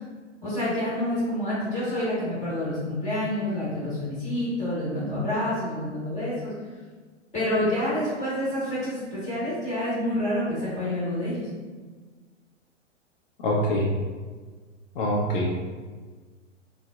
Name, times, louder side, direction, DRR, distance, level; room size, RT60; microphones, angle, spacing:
voice 1, 0.4-6.5 7.3-11.5, left 1 dB, 20° left, -10 dB, 1.2 m, -28 dB
voice 2, 13.4-13.9 15.0-15.5, equal, 50° left, -4 dB, 0.5 m, -24 dB
3.8 x 2.0 x 2.3 m, 1.4 s
figure-of-eight pair, 110°, 37 cm